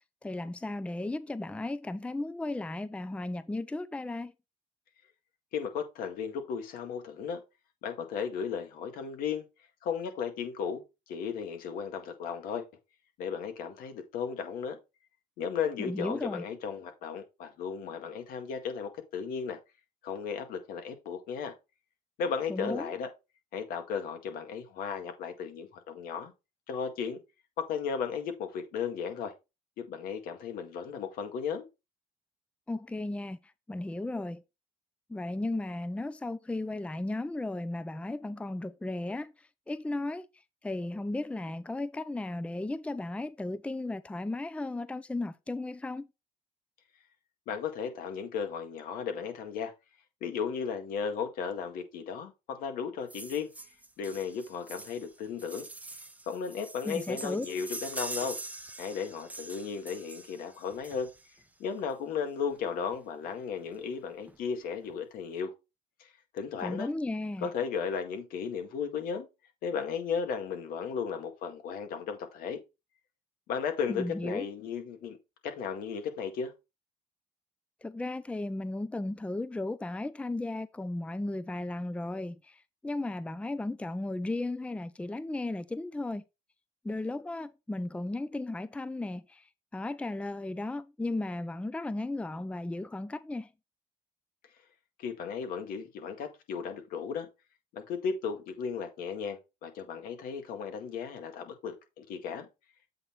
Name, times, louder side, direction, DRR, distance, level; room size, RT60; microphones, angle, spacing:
voice 1, 0.2-4.3 15.8-16.4 22.5-22.9 32.7-34.4 35.1-40.3 40.6-46.1 56.8-57.5 66.6-67.5 73.9-74.5 77.8-86.2 86.8-93.5, left 2 dB, 10° left, 0.5 m, -35 dB
voice 2, 5.5-7.4 7.8-9.5 9.8-12.7 13.2-14.8 15.4-19.6 20.0-21.5 22.2-23.1 23.5-26.3 26.7-27.2 27.6-29.3 29.8-31.7 47.5-49.7 50.2-53.5 54.0-55.7 56.3-58.4 58.8-61.1 61.6-65.5 66.0-66.9 67.4-69.3 69.6-72.6 73.5-75.2 75.4-76.5 95.0-97.3 97.7-102.5, left 6 dB, 80° left, 2.0 m, -35 dB
sound 1, 53.1-61.4 62.5-62.6 62.9-63.0 63.3-63.4 63.8-64.4 64.8-64.9, right 2 dB, 10° right, 0.9 m, -44 dB
7.9 x 4.0 x 4.5 m
cardioid pair, 85°, 15 cm